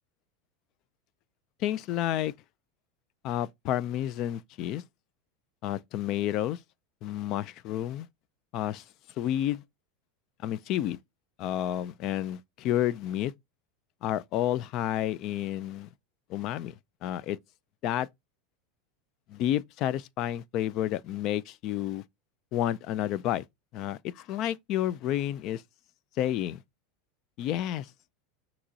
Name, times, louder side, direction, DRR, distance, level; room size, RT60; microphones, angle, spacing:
voice 1, 1.6-2.3 3.2-4.8 5.6-6.6 7.0-8.1 8.5-8.8 9.2-9.6 10.4-11.0 11.4-13.3 14.0-15.9 16.3-16.7 17.0-17.4 17.8-18.1 19.3-22.0 22.5-23.4 23.7-25.6 26.2-26.6 27.4-27.9, left 12 dB, 45° left, 0.3 m, -30 dB
6.0 x 3.0 x 2.7 m
supercardioid pair, 135°, 0 cm